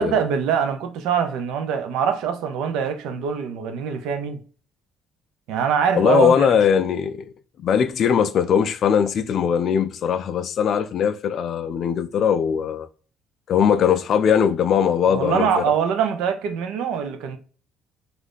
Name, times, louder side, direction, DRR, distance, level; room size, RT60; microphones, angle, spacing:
voice 1, 0.0-4.4 5.5-6.5 15.1-17.4, right 7 dB, 80° right, 0.5 m, -23 dB
voice 2, 5.9-7.3 7.6-12.9 13.5-15.7, left 7 dB, 60° left, 0.3 m, -20 dB
2.6 x 2.3 x 3.3 m
supercardioid pair, 85°, 0 cm